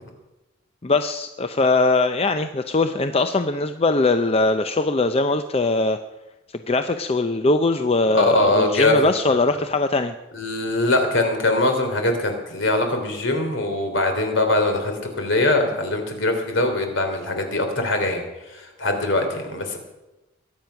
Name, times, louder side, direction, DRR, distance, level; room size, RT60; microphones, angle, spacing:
voice 1, 0.8-6.0 6.7-10.1, left 3 dB, 30° left, 8 dB, 0.6 m, -21 dB
voice 2, 8.1-8.9 9.3-9.4 10.3-18.2 18.5-19.8, left 2 dB, 65° left, 5 dB, 3.3 m, -22 dB
22.5 x 9.4 x 5.8 m, 1.0 s
head